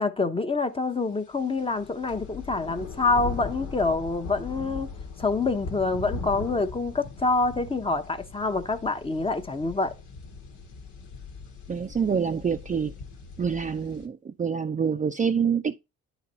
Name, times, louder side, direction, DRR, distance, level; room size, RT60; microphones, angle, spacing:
voice 1, 0.0-4.9 5.2-9.9, left 3 dB, 20° left, 0.8 m, -26 dB
sound 1, 1.4-14.1, left 4 dB, 80° left, 1.3 m, -40 dB
voice 2, 11.7-12.9 13.4-15.8, right 6 dB, 25° right, 0.5 m, -26 dB
9.5 x 4.1 x 4.1 m
cardioid pair, 90°, 30 cm